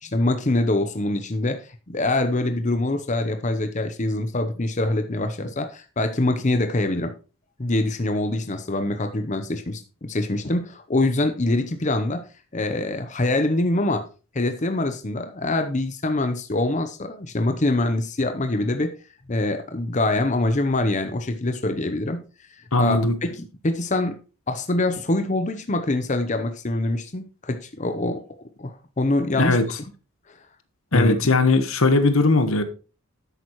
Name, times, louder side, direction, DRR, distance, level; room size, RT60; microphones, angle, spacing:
voice 1, 0.0-7.1 7.6-12.3 12.5-14.1 14.3-18.9 19.3-22.2 22.5-24.2 24.5-28.2 28.6-29.6 30.3-30.4 30.9-31.2, left 2 dB, 35° left, 0.8 m, -24 dB
voice 2, 22.7-23.1 29.4-29.6 30.9-32.6, left 2 dB, 75° left, 1.3 m, -19 dB
11.0 x 8.5 x 3.1 m
head